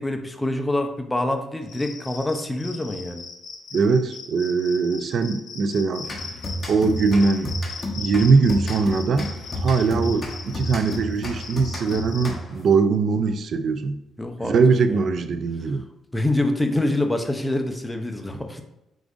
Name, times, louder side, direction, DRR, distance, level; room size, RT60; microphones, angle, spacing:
voice 1, 0.0-3.2 10.0-10.2 14.2-14.5 14.9-15.2 16.1-18.6, left 1 dB, 10° left, 5 dB, 0.5 m, -26 dB
Cricket, 1.6-12.3, left 5 dB, 85° left, 0.8 m, -39 dB
voice 2, 3.7-6.1 6.7-7.5 8.0-14.0 14.4-15.9, right 4 dB, 55° right, 10 dB, 0.3 m, -21 dB
sound 1, 6.0-12.7, equal, 25° left, 1.1 m, -31 dB
5.0 x 3.7 x 2.4 m, 0.89 s
cardioid pair, 90°, 0 cm